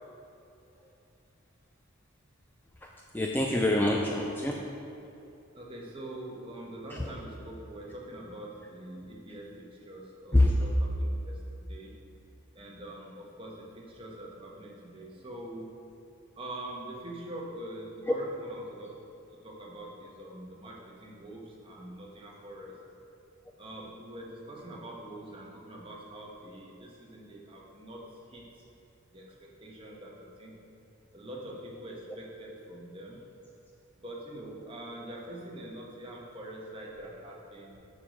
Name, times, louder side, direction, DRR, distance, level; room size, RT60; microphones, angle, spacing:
voice 1, 2.8-4.6 6.9-7.1 10.3-10.5 18.0-18.1, left 1 dB, 10° left, 0 dB, 0.4 m, -26 dB
voice 2, 5.5-12.0 12.5-15.7 16.4-18.9 19.4-22.8 23.6-28.7 29.1-30.7 31.1-33.3 34.0-37.8, right 1 dB, 25° right, -3 dB, 1.2 m, -44 dB
7.1 x 6.4 x 5.2 m, 2.8 s
head